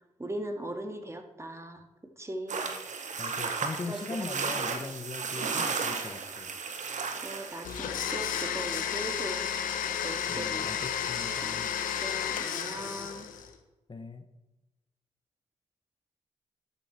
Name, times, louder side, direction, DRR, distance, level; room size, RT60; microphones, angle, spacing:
voice 1, 0.2-1.8 2.2-2.7 3.9-4.0 4.3-4.4 7.0-9.5 10.0-10.7 11.4-11.6 12.0-13.3, right 1 dB, 20° right, 5 dB, 2.1 m, -39 dB
sound 1, 2.5-7.8, right 5 dB, 65° right, 1.6 m, -34 dB
voice 2, 3.2-6.6 10.3-11.7 13.9-14.3, left 3 dB, 35° left, 8 dB, 1.2 m, -40 dB
Domestic sounds home sounds, 7.6-13.5, left 8 dB, 85° left, 1.1 m, -32 dB
12.0 x 8.8 x 4.4 m, 1.0 s
supercardioid pair, 45°, 14 cm